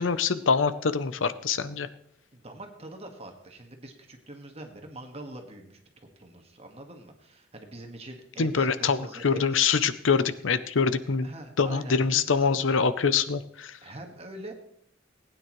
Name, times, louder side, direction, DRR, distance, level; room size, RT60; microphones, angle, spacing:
voice 1, 0.0-1.9 8.4-11.3 11.6-13.8, left 5 dB, 90° left, 13 dB, 0.7 m, -25 dB
voice 2, 2.3-9.6 11.2-12.7 13.8-14.5, right 1 dB, 35° right, 3 dB, 1.7 m, -44 dB
19.5 x 9.5 x 3.1 m, 0.72 s
head